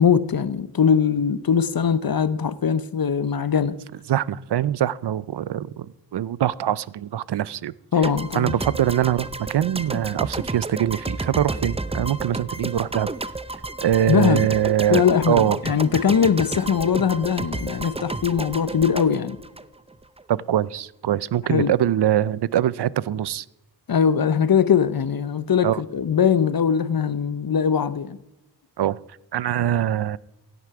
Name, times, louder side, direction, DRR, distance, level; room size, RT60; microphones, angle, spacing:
voice 1, 0.0-3.8 7.9-8.6 14.1-14.5 14.9-19.4 21.5-21.7 23.9-28.2, left 7 dB, 55° left, 0.9 m, -21 dB
voice 2, 4.1-7.7 8.3-13.1 13.8-15.6 20.3-23.4 25.6-25.8 28.8-29.0 29.3-30.2, right 11 dB, 70° right, 0.6 m, -23 dB
sound 1, 8.0-20.2, right 2 dB, 15° right, 0.6 m, -31 dB
16.5 x 9.6 x 4.9 m
cardioid pair, 60°, 42 cm